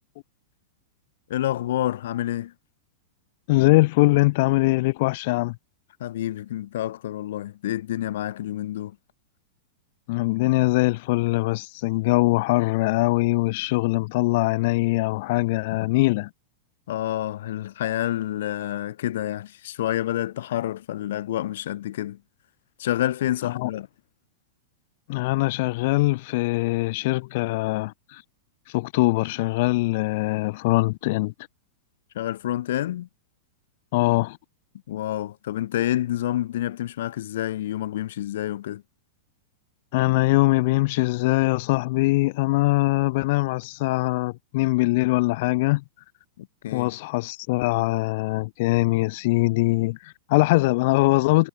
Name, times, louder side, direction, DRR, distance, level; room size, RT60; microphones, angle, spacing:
voice 1, 1.3-2.5 6.0-9.0 15.7-15.9 16.9-22.2 22.8-23.9 32.1-33.1 34.9-38.8 46.4-46.9, left 13 dB, 70° left, 6.0 m, -28 dB
voice 2, 3.5-5.6 10.1-16.3 23.4-23.7 25.1-28.2 28.7-31.3 33.9-34.4 39.9-45.8 46.7-51.5, left 22 dB, 50° left, 4.5 m, -22 dB
supercardioid pair, 160°, 0 cm